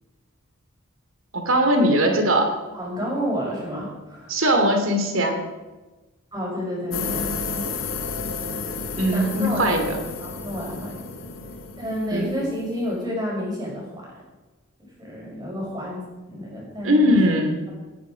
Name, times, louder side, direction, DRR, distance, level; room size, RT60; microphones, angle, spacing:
voice 1, 1.3-2.5 4.3-5.4 8.9-10.0 12.1-12.3 16.8-17.6, equal, 65° right, 5 dB, 2.8 m, -20 dB
voice 2, 2.7-4.3 6.3-7.2 7.5-7.7 9.1-9.8 10.2-11.1 11.8-13.9 14.1-14.2 15.0-17.1, equal, 20° right, -4 dB, 6.1 m, -30 dB
sound 1, 6.9-13.0, left 4 dB, 60° left, 1.7 m, -32 dB
18.0 x 10.0 x 5.1 m, 1.2 s
head